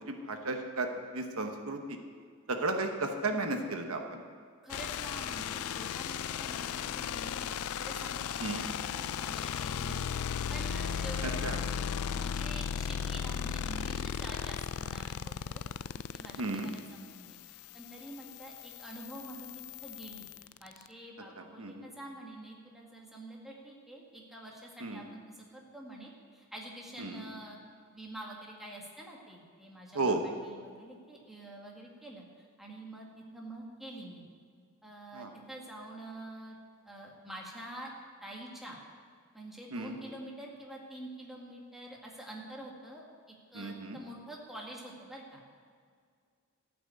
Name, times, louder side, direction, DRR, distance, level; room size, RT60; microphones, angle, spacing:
voice 1, 0.0-2.0 2.5-4.2 8.4-8.6 11.4-11.6 16.4-16.7 21.4-21.9 24.8-25.0 27.0-27.2 29.9-30.2 35.1-35.3 39.7-40.0 43.5-44.0, right 2 dB, 70° right, 5 dB, 1.1 m, -34 dB
voice 2, 4.6-11.5 12.1-15.6 16.1-27.6 27.9-34.2 34.8-36.6 36.9-37.9 38.2-38.8 39.3-45.4, right 1 dB, ahead, -3 dB, 1.9 m, -47 dB
sound 1, 4.7-20.9, left 8 dB, 75° left, 0.4 m, -36 dB
14.5 x 6.1 x 8.4 m, 2.1 s
head